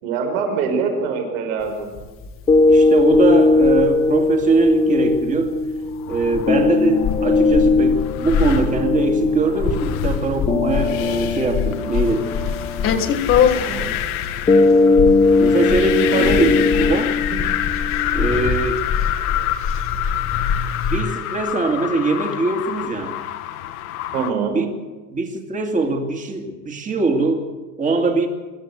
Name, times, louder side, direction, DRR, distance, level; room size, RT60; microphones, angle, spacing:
voice 1, 0.0-1.9 13.5-13.9 16.1-16.3 17.3-17.4 24.1-24.6, right 5 dB, 90° right, 3 dB, 5.8 m, -24 dB
sound 1, 1.6-21.0, left 6 dB, 30° left, 1.6 m, -25 dB
sound 2, 2.5-18.5, left 3 dB, 15° left, 0.9 m, -19 dB
voice 2, 2.7-5.6 6.1-12.4 15.4-17.2 18.1-18.8 20.9-23.1 24.5-24.7 25.1-27.4 27.8-28.3, right 3 dB, 20° right, 4 dB, 2.5 m, -21 dB
sound 3, 5.8-24.3, left 12 dB, 85° left, 1.8 m, -28 dB
24.5 x 13.5 x 8.2 m, 1.3 s
cardioid pair, 160°, 42 cm